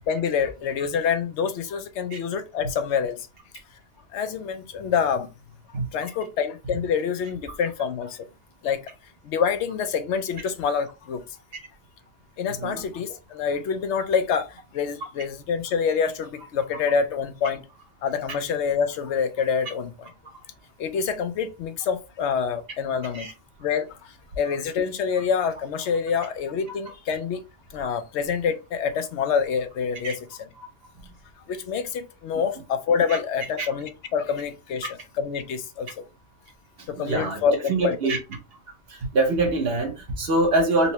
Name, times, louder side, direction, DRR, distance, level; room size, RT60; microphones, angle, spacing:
voice 1, 0.1-3.3 4.1-5.3 5.9-8.3 8.6-8.8 9.2-11.2 12.4-17.6 18.0-20.1 20.8-23.3 23.6-27.4 27.7-30.5 31.5-36.0 36.9-38.0, left 6 dB, 80° left, 0.9 m, -26 dB
voice 2, 36.8-37.4 37.7-38.2 38.9-40.9, right 2 dB, 60° right, 1.1 m, -24 dB
4.0 x 2.1 x 2.8 m
omnidirectional pair, 1.2 m